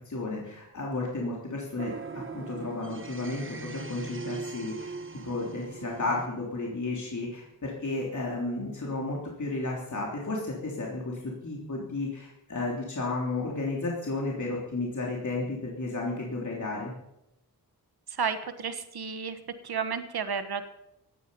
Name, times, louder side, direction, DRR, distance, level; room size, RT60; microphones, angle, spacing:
voice 1, 0.0-1.9 2.3-4.9 5.2-16.9, left 2 dB, 50° left, -3 dB, 3.4 m, -33 dB
sound 1, 1.8-6.3, right 4 dB, 30° right, 1.3 m, -40 dB
voice 2, 18.1-19.4 19.6-20.6, right 6 dB, 75° right, 9 dB, 1.4 m, -32 dB
17.5 x 12.5 x 5.4 m, 0.85 s
wide cardioid pair, 100°, 38 cm